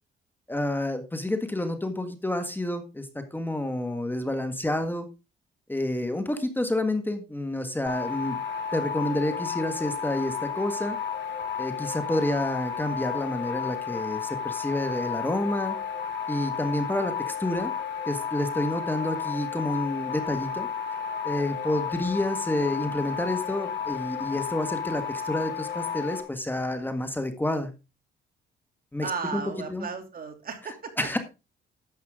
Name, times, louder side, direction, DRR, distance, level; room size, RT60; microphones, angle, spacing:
voice 1, 0.5-5.1 5.7-8.4 8.7-11.0 11.6-15.8 16.3-17.7 18.1-20.7 21.2-27.7 28.9-29.4 29.7-29.9 31.0-31.2, left 1 dB, 10° left, 7 dB, 1.7 m, -29 dB
sound 1, 7.9-26.2, left 7 dB, 65° left, 4.6 m, -32 dB
voice 2, 29.0-30.9, right 5 dB, 45° right, 6 dB, 2.9 m, -34 dB
11.5 x 8.0 x 3.7 m, 0.28 s
cardioid pair, 90°, 20 cm